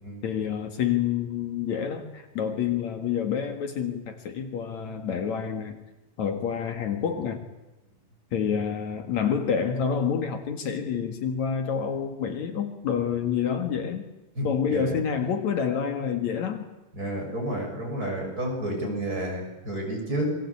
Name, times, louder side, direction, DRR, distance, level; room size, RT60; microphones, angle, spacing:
voice 1, 0.2-5.8 6.2-7.4 8.3-14.0 14.4-16.7 18.7-19.0, left 7 dB, 65° left, 6 dB, 3.0 m, -28 dB
voice 2, 14.4-15.0 16.9-20.4, right 1 dB, 25° right, 1 dB, 7.4 m, -30 dB
28.0 x 22.5 x 8.6 m, 1.0 s
omnidirectional pair, 3.6 m